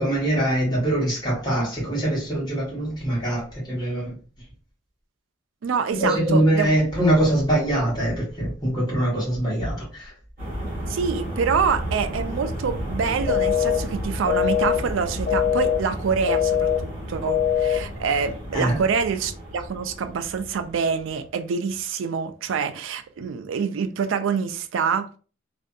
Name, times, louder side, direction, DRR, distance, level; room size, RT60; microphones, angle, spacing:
voice 1, 0.0-4.2 5.9-10.1 18.5-18.8, right 1 dB, 20° left, 1.2 m, -23 dB
voice 2, 5.6-6.7 10.9-25.1, right 6 dB, 75° right, 0.3 m, -26 dB
sound 1, 10.4-21.2, equal, 40° right, 1.1 m, -33 dB
sound 2, 13.3-13.8 14.3-14.8 15.3-15.8 16.3-16.8 17.3-17.8, left 9 dB, 70° left, 0.9 m, -21 dB
2.6 x 2.5 x 2.2 m
head